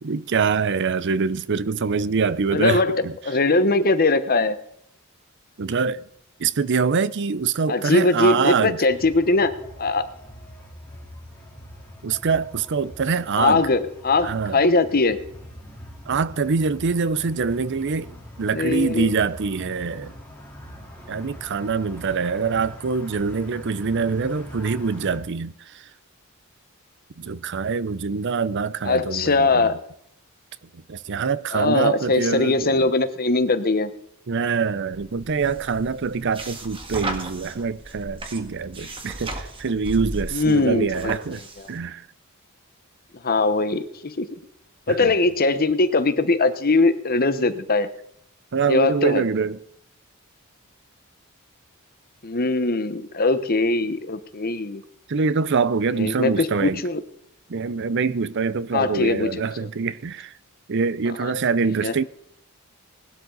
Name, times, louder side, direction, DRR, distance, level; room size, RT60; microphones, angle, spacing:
voice 1, 0.0-3.2 5.6-6.0 6.4-8.8 12.0-13.7 14.2-14.6 16.1-20.1 21.1-25.9 27.2-29.8 30.9-32.9 34.3-41.4 41.7-42.1 44.9-45.1 48.5-49.6 55.1-56.8 57.5-60.3 60.7-62.0, right 5 dB, 55° right, 0.6 m, -24 dB
voice 2, 2.5-4.6 7.7-9.5 9.8-10.1 13.4-15.2 18.5-19.1 28.9-29.8 31.5-33.9 40.3-41.2 43.2-44.3 44.9-47.9 48.7-49.2 52.2-54.8 56.0-57.0 58.7-59.3 61.2-61.3 61.8-62.0, left 3 dB, 45° left, 1.1 m, -21 dB
sound 1, 8.9-25.2, equal, 10° left, 3.6 m, -42 dB
sound 2, 34.9-41.7, right 1 dB, 25° right, 1.9 m, -36 dB
20.0 x 12.5 x 4.0 m
head